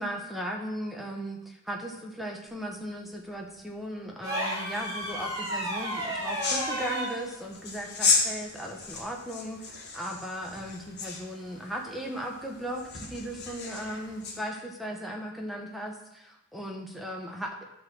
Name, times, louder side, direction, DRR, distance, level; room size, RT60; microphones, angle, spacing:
voice 1, 0.0-17.5, equal, ahead, 0 dB, 1.1 m, -37 dB
sound 1, 4.2-7.2 8.8-9.0, right 1 dB, 20° right, 2.3 m, -32 dB
sound 2, 4.7-14.4, left 4 dB, 55° left, 1.9 m, -34 dB
12.0 x 4.1 x 6.4 m, 0.87 s
head